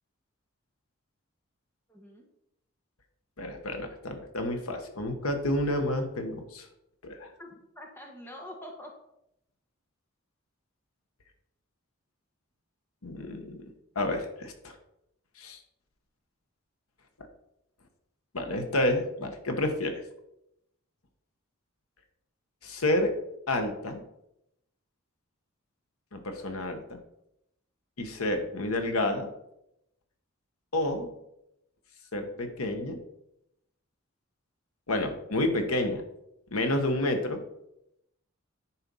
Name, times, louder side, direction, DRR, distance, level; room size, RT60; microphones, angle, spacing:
voice 1, 1.9-2.2 7.4-8.9, left 1 dB, 10° left, 0 dB, 1.3 m, -45 dB
voice 2, 3.4-6.7 7.0-7.3 13.0-14.7 15.4-15.6 18.3-20.0 22.6-23.1 23.5-24.0 26.1-27.0 28.0-29.3 30.7-31.1 32.1-33.0 34.9-36.0 36.5-37.4, left 1 dB, 90° left, 6 dB, 1.2 m, -30 dB
10.0 x 4.4 x 5.4 m, 0.82 s
head